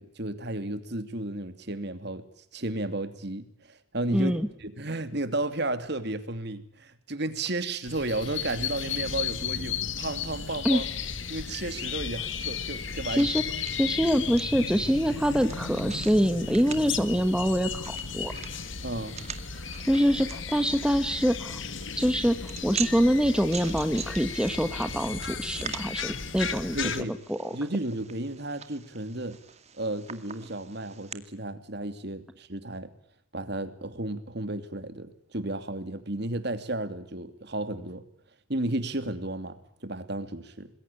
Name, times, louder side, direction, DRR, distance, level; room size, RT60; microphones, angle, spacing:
voice 1, 0.0-2.2 2.5-4.3 4.6-10.8 11.3-13.3 18.8-19.2 26.7-27.2 27.5-29.4 29.8-32.9 33.3-38.0 38.5-40.7, right 2 dB, 55° right, 10 dB, 2.8 m, -33 dB
voice 2, 4.1-4.5 10.6-10.8 13.1-13.4 13.7-18.3 19.9-21.6 22.0-22.4 22.6-26.8 27.3-27.5, equal, 5° right, 8 dB, 1.4 m, -25 dB
sound 1, 7.9-27.0, left 6 dB, 75° left, 1.9 m, -35 dB
sound 2, 12.1-31.1, right 8 dB, 35° right, 2.2 m, -44 dB
27.5 x 21.5 x 8.7 m, 0.69 s
head